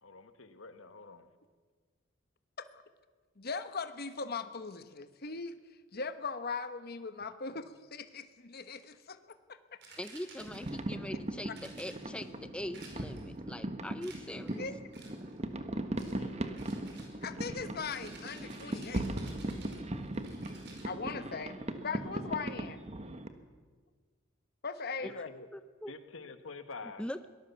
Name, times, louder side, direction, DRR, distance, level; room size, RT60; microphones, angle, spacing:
voice 1, 0.0-1.3 7.5-7.6 15.9-16.4 25.0-25.5 25.9-27.0, left 4 dB, 80° left, 9 dB, 1.6 m, -48 dB
voice 2, 3.4-5.6 5.9-9.6 14.6-14.7 17.2-19.1 20.8-21.6 21.8-22.8 24.6-25.3, left 4 dB, 50° left, 10 dB, 1.1 m, -39 dB
sound 1, 9.8-10.9 11.5-12.3 12.7-13.4 14.0-14.6 14.9-15.4 16.0-16.2 16.6-20.9, right 4 dB, 60° right, 5.1 m, -54 dB
voice 3, 10.0-14.6 25.0-25.1 25.5-25.9 27.0-27.3, left 1 dB, 5° left, 11 dB, 0.5 m, -42 dB
sound 2, 10.4-23.3, right 1 dB, 35° right, 1.4 m, -39 dB
23.0 x 18.5 x 7.1 m, 1.5 s
head